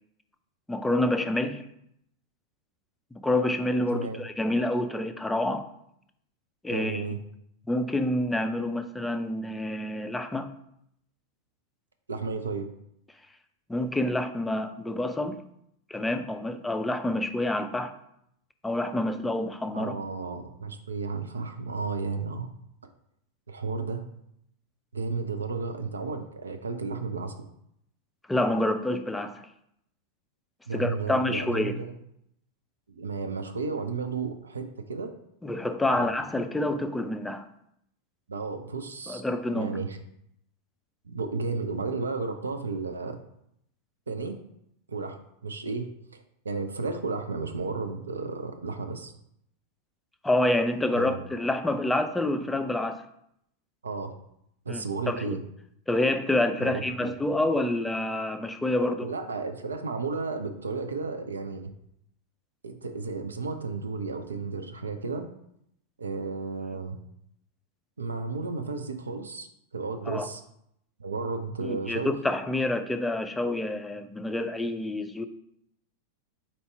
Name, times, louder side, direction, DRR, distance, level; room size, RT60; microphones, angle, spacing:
voice 1, 0.7-1.6 3.1-5.7 6.6-7.0 7.7-10.5 13.7-15.4 15.9-17.9 18.6-19.9 28.3-29.4 30.7-31.8 35.4-37.4 39.1-39.7 50.2-53.0 54.7-55.2 55.9-59.1 70.1-70.3 71.6-75.3, left 1 dB, 5° left, 9 dB, 0.3 m, -27 dB
voice 2, 3.9-4.3 6.7-7.2 12.1-12.7 19.7-22.5 23.5-24.0 24.9-27.3 30.7-31.9 32.9-35.1 35.9-36.1 38.3-39.2 39.5-40.0 41.0-43.2 44.1-44.4 44.9-49.1 50.9-51.3 53.8-54.1 54.7-55.4 56.6-57.1 59.0-61.7 62.6-65.3 66.0-67.0 68.0-69.5 69.7-70.4 71.0-72.1, right 4 dB, 75° right, 7 dB, 0.4 m, -33 dB
4.2 x 2.7 x 4.5 m, 0.75 s
figure-of-eight pair, 90°, 0 cm